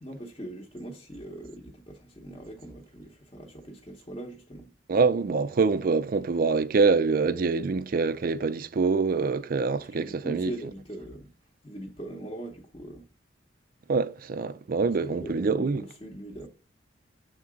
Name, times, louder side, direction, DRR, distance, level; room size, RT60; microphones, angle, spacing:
voice 1, 0.0-4.7 9.9-11.3 11.6-13.1 15.1-16.5, right 1 dB, 25° left, 0.9 m, -41 dB
voice 2, 4.9-10.5 13.9-15.9, right 4 dB, 50° right, 0.4 m, -25 dB
7.0 x 3.7 x 5.0 m
head